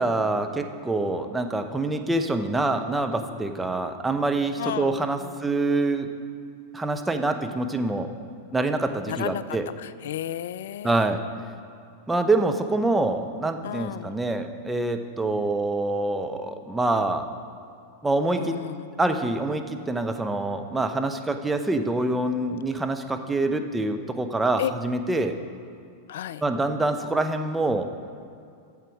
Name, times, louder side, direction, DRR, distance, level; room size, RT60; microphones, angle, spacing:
voice 1, 0.0-6.1 6.7-8.1 8.5-9.6 10.8-11.2 12.1-17.3 18.0-18.6 19.0-25.4 26.4-27.9, right 2 dB, 10° right, 6 dB, 0.8 m, -25 dB
voice 2, 4.6-5.4 9.1-11.1 13.6-14.1 18.3-18.9 24.6-24.7 26.1-26.4, left 11 dB, 70° left, 16 dB, 0.4 m, -33 dB
11.0 x 7.6 x 4.7 m, 2.5 s
hypercardioid pair, 95°, 0 cm